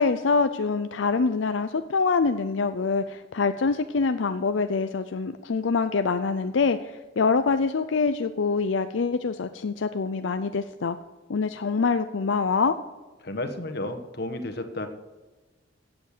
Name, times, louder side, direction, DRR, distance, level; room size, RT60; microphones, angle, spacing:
voice 1, 0.0-11.0 11.3-12.8, left 4 dB, 85° left, 9 dB, 0.5 m, -25 dB
voice 2, 13.2-14.9, left 1 dB, 60° left, 8 dB, 1.5 m, -32 dB
16.0 x 8.0 x 6.7 m, 1.2 s
head